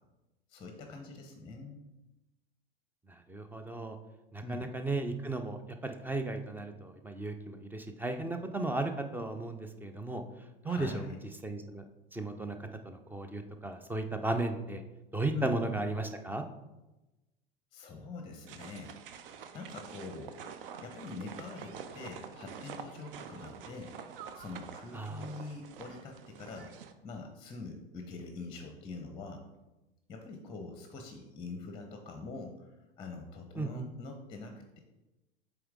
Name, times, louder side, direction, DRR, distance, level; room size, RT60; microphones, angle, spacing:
voice 1, 0.5-1.8 4.4-4.7 10.6-11.2 15.3-15.5 17.7-18.9 19.5-20.4 20.8-23.9 24.3-26.7 27.0-29.4 30.1-34.8, left 3 dB, 15° left, 4 dB, 0.8 m, -44 dB
voice 2, 3.1-4.0 4.3-10.2 10.6-11.0 11.4-11.8 12.1-12.6 12.8-14.8 15.1-16.4 24.9-25.3 33.6-33.9, right 2 dB, 5° right, 7 dB, 0.4 m, -35 dB
sound 1, 18.5-26.9, right 7 dB, 65° right, 0.6 m, -47 dB
7.8 x 3.5 x 3.7 m, 1.0 s
figure-of-eight pair, 80°, 30 cm